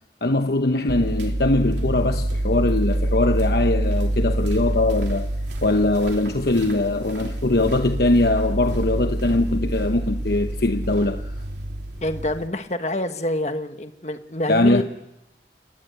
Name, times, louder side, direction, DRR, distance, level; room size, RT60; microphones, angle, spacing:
voice 1, 0.2-5.3 5.6-11.3 14.5-14.8, left 2 dB, 65° left, 1.0 m, -21 dB
sound 1, 0.9-12.5, right 1 dB, 80° right, 3.1 m, -26 dB
voice 2, 12.0-14.8, left 1 dB, 40° left, 1.4 m, -26 dB
29.5 x 20.0 x 8.2 m
head